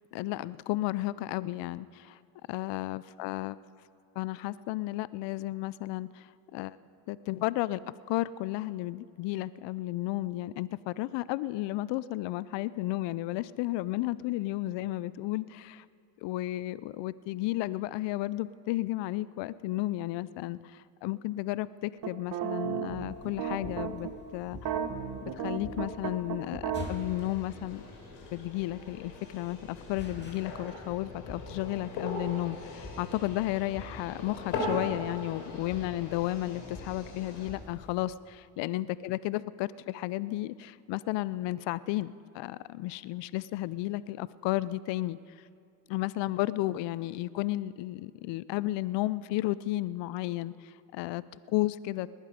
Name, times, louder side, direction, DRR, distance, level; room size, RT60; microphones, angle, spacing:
voice 1, 0.1-2.2 2.5-3.6 4.2-6.8 7.1-7.8 8.1-15.9 16.2-24.6 25.2-27.9 28.3-45.5 45.9-52.1, left 17 dB, 60° left, 18 dB, 0.5 m, -33 dB
sound 1, 22.0-24.1 24.5-26.9, right 8 dB, 45° right, 1.2 m, -34 dB
sound 2, 23.1-38.0, left 2 dB, 20° left, 2.4 m, -48 dB
sound 3, 26.7-37.5, left 2 dB, 80° left, 4.0 m, -40 dB
19.5 x 11.0 x 5.1 m, 2.5 s
supercardioid pair, 85°, 48 cm